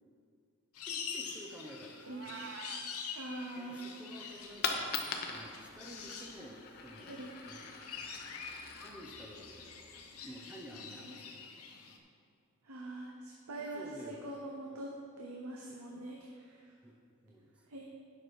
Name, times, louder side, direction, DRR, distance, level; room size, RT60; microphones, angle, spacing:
sound 1, 0.7-12.0, left 6 dB, 75° left, 0.8 m, -46 dB
voice 1, 0.8-2.4 3.6-8.3 8.8-12.0 13.6-14.4 16.8-17.0 17.2-17.7, equal, 5° right, 0 dB, 0.7 m, -52 dB
Meow, 2.0-2.8, right 7 dB, 55° right, 0.3 m, -46 dB
voice 2, 3.1-3.9 7.1-7.3 12.6-14.9 15.2-16.7 17.7-17.9, right 1 dB, 75° right, -1 dB, 0.8 m, -43 dB
Coin (dropping), 4.3-10.3, left 5 dB, 45° left, 0.7 m, -42 dB
9.4 x 6.0 x 4.7 m, 2.3 s
head